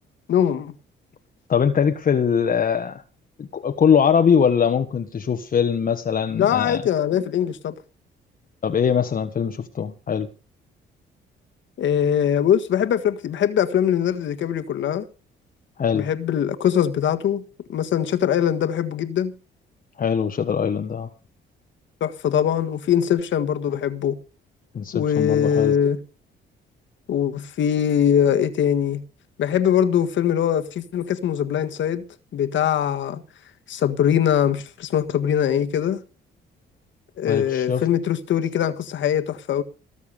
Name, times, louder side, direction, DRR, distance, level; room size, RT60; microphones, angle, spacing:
voice 1, 0.3-0.7 6.3-7.7 11.8-15.0 15.9-17.4 17.7-19.3 22.0-24.2 24.9-26.0 27.1-29.0 29.4-32.0 32.3-33.2 33.7-36.0 37.2-39.6, left 9 dB, 70° left, 1.6 m, -22 dB
voice 2, 1.5-3.0 3.4-6.8 8.6-10.3 15.8-16.1 20.0-21.1 24.7-25.7 37.2-37.8, left 7 dB, 45° left, 1.3 m, -22 dB
19.0 x 7.1 x 6.9 m
cardioid pair, 90°, 20 cm